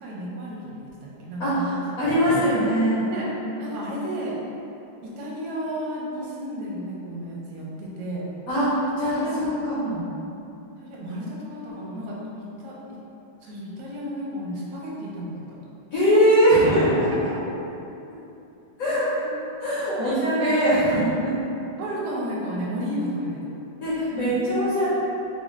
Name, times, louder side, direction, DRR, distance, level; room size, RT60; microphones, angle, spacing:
voice 1, 0.0-1.8 3.1-3.3 3.6-4.4 5.0-8.2 9.2-9.5 9.9-10.0 10.8-13.0 13.4-15.6 17.0-17.2 20.0-20.6 21.3-21.4 21.8-23.4, equal, 65° right, -5 dB, 1.2 m, -33 dB
voice 2, 1.4-3.0 8.5-8.7 9.0-10.1 15.9-17.3 18.8-19.2 19.6-21.3 23.8-24.9, equal, 55° left, -10 dB, 1.2 m, -21 dB
3.7 x 2.5 x 3.1 m, 2.9 s
omnidirectional pair, 2.0 m